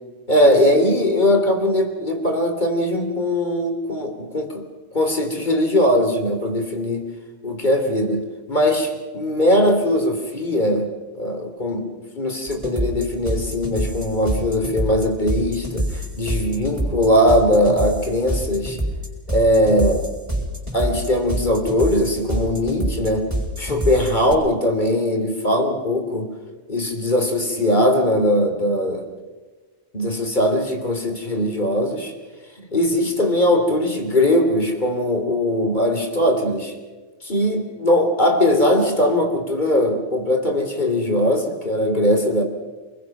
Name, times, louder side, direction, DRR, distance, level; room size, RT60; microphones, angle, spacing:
voice 1, 0.3-4.6 4.9-7.1 7.4-8.2 8.5-10.9 11.1-11.9 12.1-18.8 19.3-20.0 20.7-23.3 23.6-26.3 26.7-29.0 29.9-32.1 32.7-36.7 37.2-42.4, left 1 dB, 35° left, 4 dB, 3.3 m, -20 dB
sound 1, 12.5-24.3, right 1 dB, 10° right, 6.1 m, -26 dB
28.0 x 21.5 x 6.0 m, 1.3 s
omnidirectional pair, 1.4 m